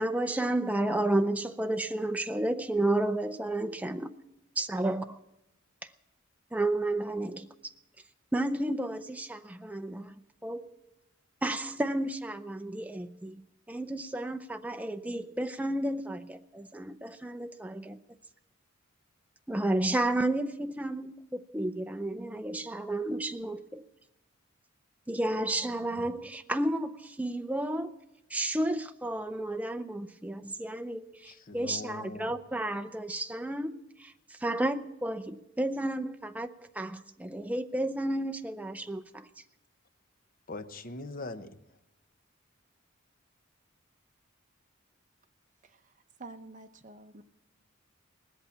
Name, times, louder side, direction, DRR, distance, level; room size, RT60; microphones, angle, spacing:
voice 1, 0.0-4.1 4.6-5.2 6.5-7.5 8.3-10.1 10.4-10.8 11.4-13.4 13.7-18.0 19.5-23.8 25.1-27.9 28.3-39.0, right 1 dB, 5° right, 0.5 m, -32 dB
voice 2, 31.2-32.3 40.5-41.6, left 2 dB, 45° left, 0.8 m, -41 dB
voice 3, 45.6-45.9 46.2-47.2, right 3 dB, 40° right, 0.9 m, -48 dB
19.0 x 8.3 x 8.4 m
head